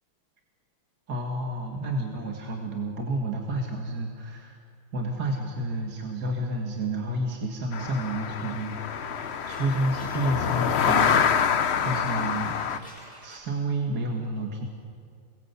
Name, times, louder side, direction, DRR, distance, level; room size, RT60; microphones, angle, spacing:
voice 1, 1.1-4.6 4.9-12.6 13.2-14.7, right 1 dB, 50° right, 1 dB, 2.5 m, -30 dB
sound 1, 7.7-12.8, left 7 dB, 80° left, 0.5 m, -26 dB
sound 2, 8.4-13.5, equal, 25° left, 6.8 m, -49 dB
28.5 x 21.5 x 8.3 m, 2.3 s
omnidirectional pair, 2.3 m